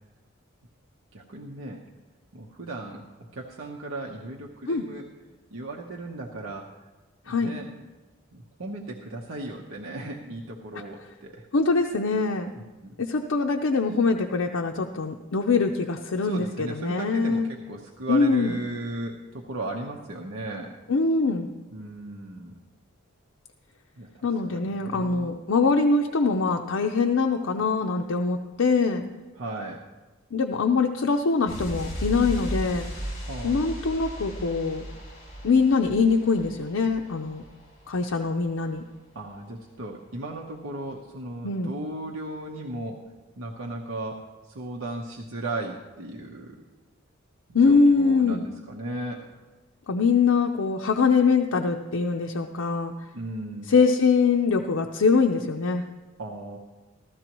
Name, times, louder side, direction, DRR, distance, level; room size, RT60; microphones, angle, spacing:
voice 1, 1.1-1.8 2.3-5.1 5.5-6.9 7.3-7.7 8.3-11.5 12.6-12.7 16.2-20.7 21.7-22.6 24.0-25.3 29.4-29.8 33.3-33.6 39.1-43.0 43.4-46.7 47.6-49.2 53.1-53.7 56.2-56.6, right 2 dB, 85° right, -1 dB, 1.0 m, -36 dB
voice 2, 11.5-12.5 13.0-17.5 18.1-18.5 20.9-21.5 24.2-29.1 30.3-32.8 33.4-34.9 35.4-37.4 37.9-38.8 41.4-41.7 47.5-48.4 49.9-52.9 53.7-55.8, left 4 dB, 80° left, 2 dB, 0.6 m, -23 dB
sound 1, 31.5-38.0 38.2-38.4, right 1 dB, 35° left, 3.1 m, -36 dB
15.0 x 12.5 x 3.0 m, 1.2 s
head